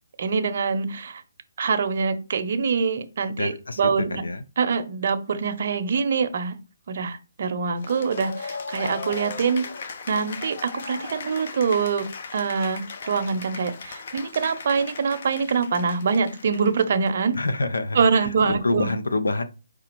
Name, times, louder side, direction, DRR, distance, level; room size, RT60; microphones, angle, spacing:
voice 1, 0.2-1.2 1.6-4.2 4.6-6.6 6.9-9.7 10.1-12.1 12.3-17.4 18.0-18.9, right 5 dB, 45° right, 8 dB, 0.6 m, -24 dB
voice 2, 3.4-4.4 17.3-19.4, left 2 dB, 90° left, 10 dB, 0.7 m, -27 dB
Cheering / Applause, 7.8-17.4, left 5 dB, 45° left, 0.6 m, -37 dB
4.9 x 2.3 x 4.5 m, 0.31 s
hypercardioid pair, 165°, 0 cm